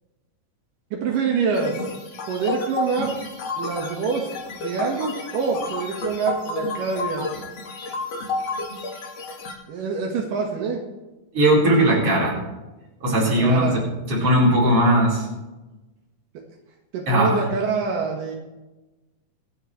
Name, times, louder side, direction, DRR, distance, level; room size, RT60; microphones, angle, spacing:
voice 1, 0.9-1.8 2.3-3.2 3.6-4.3 4.6-7.3 9.7-10.8 11.8-12.0 13.2-13.8 16.9-18.4, right 5 dB, 80° right, 0 dB, 3.2 m, -26 dB
sound 1, 1.5-9.5, left 3 dB, 55° left, 2.9 m, -31 dB
voice 2, 11.3-12.3 13.0-13.8 14.1-15.3 17.1-17.4, right 1 dB, 40° right, -4 dB, 5.0 m, -18 dB
25.5 x 9.9 x 3.2 m, 1.1 s
omnidirectional pair, 3.8 m